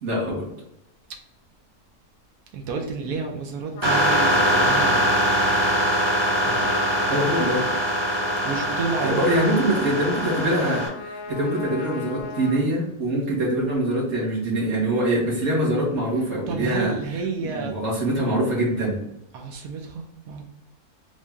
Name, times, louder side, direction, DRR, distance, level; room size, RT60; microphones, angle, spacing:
voice 1, 0.0-0.5 7.1-7.6 9.0-16.9 17.4-19.0, right 1 dB, 50° right, -4 dB, 1.6 m, -24 dB
voice 2, 2.5-5.1 6.4-6.7 8.4-9.3 16.2-17.8 19.3-20.4, right 4 dB, 85° right, 2 dB, 1.2 m, -31 dB
Trumpet, 3.7-12.6, left 4 dB, 70° left, 0.9 m, -38 dB
sound 1, 3.8-10.9, equal, 20° right, 1.1 m, -22 dB
3.6 x 2.6 x 3.4 m, 0.82 s
omnidirectional pair, 1.6 m